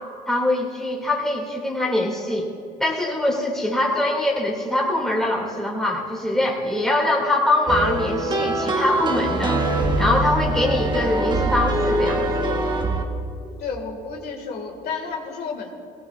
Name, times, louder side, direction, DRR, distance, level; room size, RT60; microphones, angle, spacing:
voice 1, 0.3-2.5 2.8-9.6 10.0-12.5, left 1 dB, 5° left, -2 dB, 2.3 m, -23 dB
sound 1, 7.7-13.1, right 2 dB, 25° right, 1.2 m, -23 dB
voice 2, 13.6-15.7, left 5 dB, 70° left, 1 dB, 1.9 m, -31 dB
18.5 x 17.5 x 2.4 m, 2.5 s
cardioid pair, 110°, 17 cm